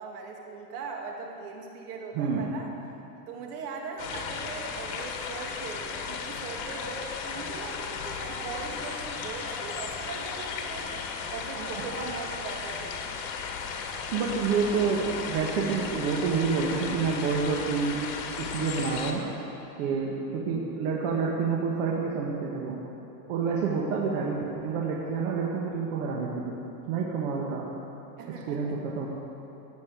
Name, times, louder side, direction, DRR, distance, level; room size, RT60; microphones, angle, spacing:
voice 1, 0.0-2.7 3.3-10.9 11.3-13.0 28.2-28.7, right 4 dB, 70° right, 0 dB, 2.7 m, -40 dB
voice 2, 2.1-2.5 11.5-12.0 14.1-18.1 18.4-19.2 19.8-22.8 23.3-26.6 26.9-27.7 28.3-29.1, right 5 dB, 55° right, -2 dB, 1.8 m, -28 dB
sound 1, 4.0-19.1, left 5 dB, 65° left, 2.1 m, -35 dB
14.5 x 8.4 x 8.2 m, 2.9 s
supercardioid pair, 150°, 47 cm